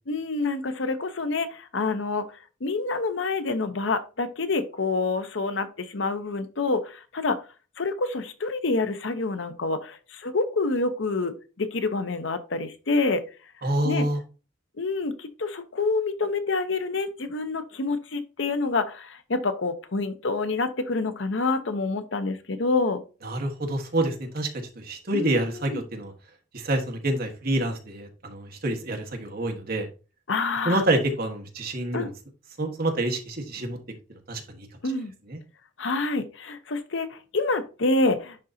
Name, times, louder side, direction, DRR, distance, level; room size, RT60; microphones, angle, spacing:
voice 1, 0.1-2.3 2.6-7.4 7.8-13.2 13.8-14.1 14.8-23.0 25.1-25.8 30.3-30.8 31.9-32.1 34.8-35.1 35.8-38.4, left 3 dB, 75° left, 10 dB, 0.8 m, -27 dB
voice 2, 13.6-14.2 23.2-24.5 24.7-26.1 26.5-29.9 30.6-32.1 32.6-33.8 34.3-34.7 35.3-35.4, right 1 dB, 55° right, 3 dB, 1.5 m, -27 dB
10.5 x 3.9 x 2.7 m, 0.33 s
head